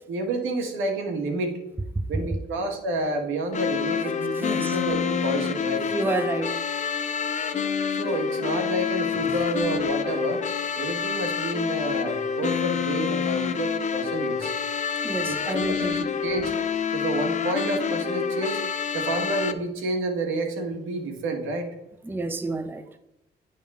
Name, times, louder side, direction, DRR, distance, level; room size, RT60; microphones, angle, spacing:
voice 1, 0.1-1.6 2.1-5.8 7.9-10.4 10.8-14.5 15.3-16.5 16.9-18.6 18.9-21.7, right 2 dB, 85° right, 1.5 m, -29 dB
sound 1, 3.5-19.5, left 6 dB, 35° left, 0.6 m, -27 dB
voice 2, 4.4-4.8 5.9-6.6 9.2-9.4 15.0-16.1 22.0-22.9, right 2 dB, 10° right, 0.5 m, -29 dB
10.5 x 3.6 x 3.5 m
cardioid pair, 90°, 20 cm